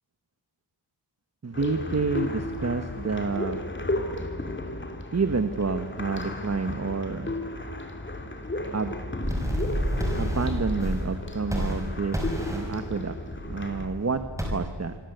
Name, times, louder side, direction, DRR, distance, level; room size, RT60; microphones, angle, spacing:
voice 1, 1.4-3.6 5.1-7.3 8.7-9.1 10.2-12.2 12.5-13.2 13.5-15.0, right 4 dB, 30° right, 10 dB, 1.2 m, -29 dB
sound 1, 1.5-13.9, left 2 dB, 25° left, 3.0 m, -34 dB
sound 2, 9.2-11.1 11.4-12.7 13.2-14.5, equal, 5° right, 5.7 m, -30 dB
27.0 x 25.0 x 8.0 m, 1.5 s
wide cardioid pair, 145°, 48 cm